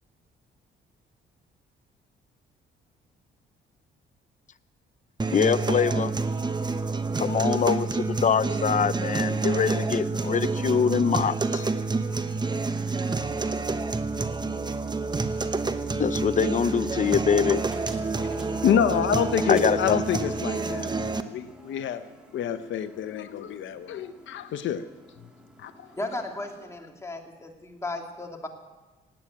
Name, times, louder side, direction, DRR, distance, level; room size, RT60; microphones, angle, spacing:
sound 1, 5.2-21.2, right 3 dB, 20° right, 0.9 m, -28 dB
voice 1, 5.3-6.1 7.2-11.7 16.0-17.6 19.5-20.0, left 7 dB, 40° left, 15 dB, 0.7 m, -24 dB
sound 2, 17.5-26.6, right 1 dB, 5° right, 2.5 m, -49 dB
voice 2, 18.3-22.0 22.3-24.8 25.6-25.9, left 8 dB, 70° left, 10 dB, 0.9 m, -27 dB
voice 3, 26.0-28.5, left 2 dB, 15° left, 2 dB, 2.6 m, -35 dB
17.5 x 9.1 x 8.6 m, 1.2 s
cardioid pair, 90°, 20 cm